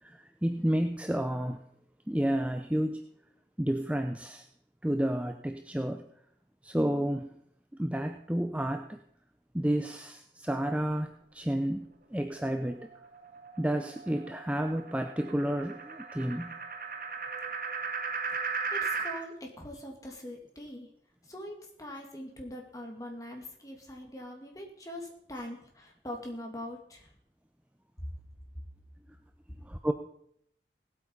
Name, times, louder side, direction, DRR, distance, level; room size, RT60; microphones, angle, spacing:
voice 1, 0.0-1.6 2.1-3.0 3.6-4.5 4.8-6.0 6.6-7.3 7.8-9.0 9.5-12.9 13.6-16.5 29.6-29.9, right 1 dB, 10° right, 6 dB, 0.6 m, -31 dB
sound 1, 12.5-19.2, right 5 dB, 50° right, 1.4 m, -37 dB
voice 2, 18.4-20.9 21.2-27.1 28.0-28.1, left 1 dB, 20° left, 1 dB, 2.5 m, -42 dB
17.5 x 8.4 x 5.5 m, 0.70 s
head